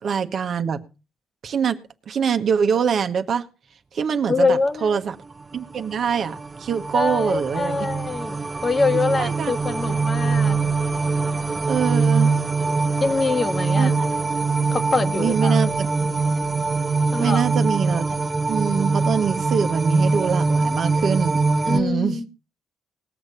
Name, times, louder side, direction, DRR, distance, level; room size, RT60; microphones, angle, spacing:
voice 1, 0.0-0.8 1.4-1.8 2.1-3.5 3.9-5.2 5.5-7.8 9.1-9.5 11.7-12.3 13.8-14.2 15.1-15.9 17.2-18.1 18.5-22.2, right 7 dB, 55° right, 1.3 m, -24 dB
voice 2, 4.3-5.0 6.9-10.6 13.0-13.9 14.7-15.6 17.1-17.5 21.6-22.3, left 3 dB, 30° left, 1.4 m, -24 dB
sound 1, 5.6-21.8, right 4 dB, 30° right, 1.0 m, -23 dB
19.5 x 6.7 x 5.6 m
cardioid pair, 90°, 0 cm